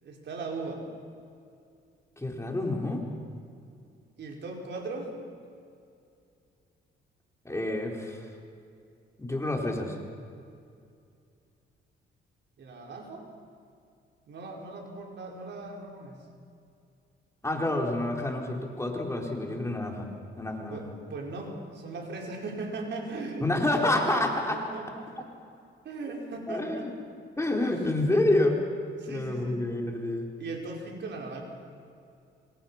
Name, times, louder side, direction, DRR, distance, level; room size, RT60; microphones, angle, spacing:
voice 1, 0.0-0.8 4.2-5.1 12.6-13.3 14.3-16.3 20.7-24.2 24.5-25.3 25.8-26.9 27.6-27.8 29.0-29.6 30.4-31.4, right 3 dB, 60° right, 1 dB, 5.2 m, -38 dB
voice 2, 2.2-3.0 7.4-8.3 9.2-10.0 17.4-20.1 20.4-20.8 23.4-24.6 26.5-26.9 27.4-28.6 29.1-30.3, left 1 dB, 15° left, 1 dB, 4.0 m, -28 dB
26.5 x 25.5 x 5.9 m, 2.4 s
cardioid pair, 90°, 20 cm